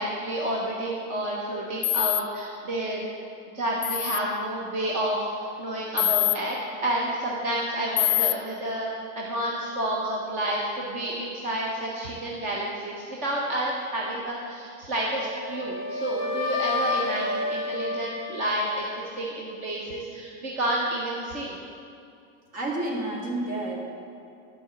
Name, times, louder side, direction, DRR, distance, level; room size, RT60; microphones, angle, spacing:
voice 1, 0.0-3.1 3.5-5.3 5.6-8.9 9.2-13.0 13.2-21.6, right 1 dB, 20° right, -4 dB, 0.5 m, -29 dB
sound 1, 1.8-2.2 3.8-4.2 6.0-6.4 8.0-8.3, left 17 dB, 75° left, 0.5 m, -23 dB
Wind instrument woodwind instrument, 15.0-19.1, left 3 dB, 15° left, 0.9 m, -31 dB
voice 2, 22.5-23.8, right 2 dB, 35° right, -3 dB, 2.0 m, -30 dB
11.0 x 4.8 x 7.3 m, 2.6 s
supercardioid pair, 170°, 42 cm